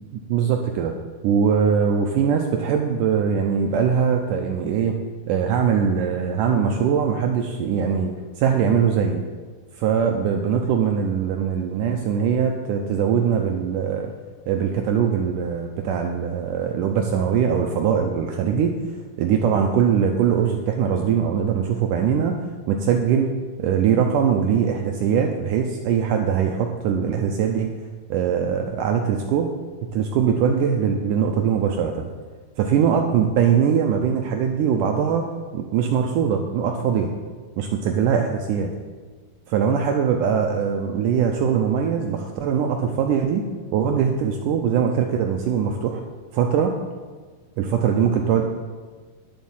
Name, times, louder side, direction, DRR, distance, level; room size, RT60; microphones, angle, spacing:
voice 1, 0.3-0.9 1.2-5.0 5.3-9.2 9.7-14.1 14.5-18.8 19.2-23.3 23.6-27.7 28.1-29.5 29.9-32.1 32.6-35.2 35.5-37.1 37.6-38.7 39.5-43.4 43.7-46.0 46.3-46.7 47.6-48.4, right 7 dB, 90° right, 3 dB, 1.8 m, -21 dB
11.0 x 7.5 x 7.2 m, 1.4 s
omnidirectional pair, 4.6 m